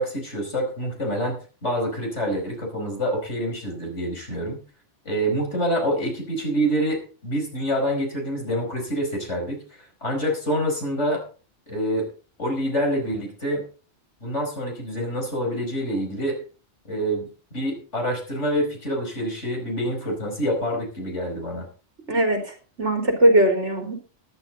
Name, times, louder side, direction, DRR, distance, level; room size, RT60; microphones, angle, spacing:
voice 1, 0.0-4.6 5.1-11.2 11.7-12.1 12.4-13.6 14.2-16.4 16.9-17.3 17.5-21.7, equal, 80° left, 2 dB, 5.4 m, -26 dB
voice 2, 22.1-23.9, right 1 dB, 80° right, 3 dB, 3.7 m, -20 dB
13.5 x 11.5 x 3.9 m, 0.36 s
omnidirectional pair, 1.2 m